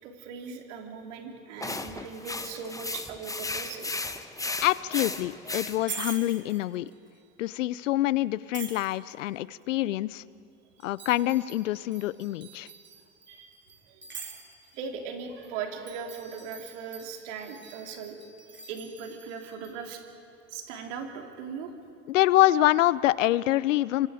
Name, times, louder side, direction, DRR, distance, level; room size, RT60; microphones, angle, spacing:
voice 1, 0.0-3.9 13.3-13.6 13.9-14.0 14.7-18.2 18.7-20.0 20.5-21.7, right 6 dB, 70° right, 3 dB, 3.1 m, -39 dB
sound 1, 1.6-6.2, left 2 dB, 10° left, 1.2 m, -35 dB
voice 2, 4.6-6.9 7.4-10.2 10.8-12.7 22.1-24.1, left 15 dB, 80° left, 20 dB, 0.6 m, -25 dB
sound 2, 5.8-7.1 8.5-9.3 10.8-14.9 15.2-15.5 15.9-20.0, right 5 dB, 30° right, 2.9 m, -44 dB
28.5 x 26.0 x 5.0 m, 2.5 s
hypercardioid pair, 75°, 37 cm